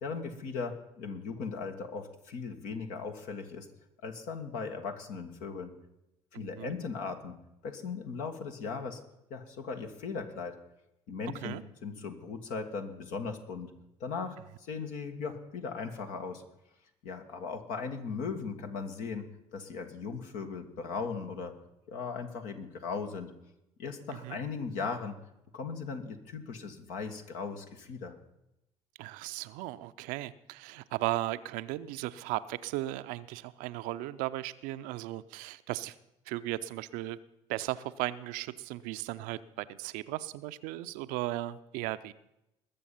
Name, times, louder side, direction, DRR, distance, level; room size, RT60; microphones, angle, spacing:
voice 1, 0.0-3.7 4.0-5.7 6.3-7.4 7.6-9.0 9.3-10.6 11.1-13.7 14.0-16.4 17.0-19.3 19.5-21.5 21.9-23.3 23.8-25.2 25.5-28.1, left 5 dB, 65° left, 5 dB, 1.5 m, -38 dB
voice 2, 6.3-6.7 11.4-11.6 24.2-24.4 29.0-36.0 36.3-37.2 37.5-42.1, right 16 dB, 65° right, 13 dB, 0.5 m, -36 dB
20.5 x 7.0 x 5.6 m, 0.87 s
hypercardioid pair, 55°, 15 cm